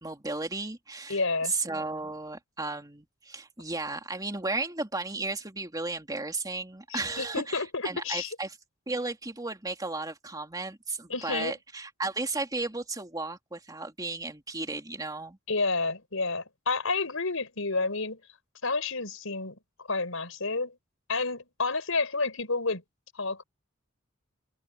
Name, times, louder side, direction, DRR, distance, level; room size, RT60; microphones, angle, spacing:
voice 1, 0.0-1.2 1.4-8.6 8.9-15.4, right 3 dB, 20° right, 3.0 m, -34 dB
voice 2, 1.1-1.5 6.9-8.4 11.1-11.5 15.5-18.2 18.6-20.8 21.1-22.8 23.1-23.4, left 3 dB, 85° left, 4.7 m, -30 dB
head